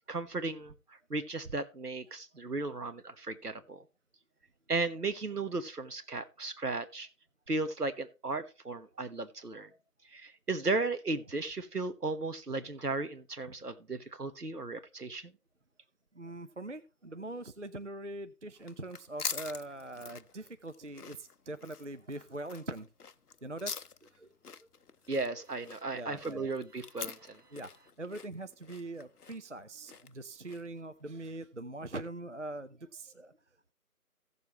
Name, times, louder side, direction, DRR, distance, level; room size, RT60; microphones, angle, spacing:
voice 1, 0.1-3.8 4.7-7.1 7.5-9.7 10.1-15.3 25.1-27.4, right 3 dB, 80° right, 1.4 m, -35 dB
voice 2, 16.1-22.9 23.4-23.7 24.1-24.3 24.6-24.7 25.9-26.5 27.5-33.4, right 2 dB, 55° right, 0.5 m, -42 dB
sound 1, 18.6-30.8, left 5 dB, 75° left, 0.7 m, -45 dB
15.5 x 7.0 x 3.0 m
figure-of-eight pair, 170°, 46 cm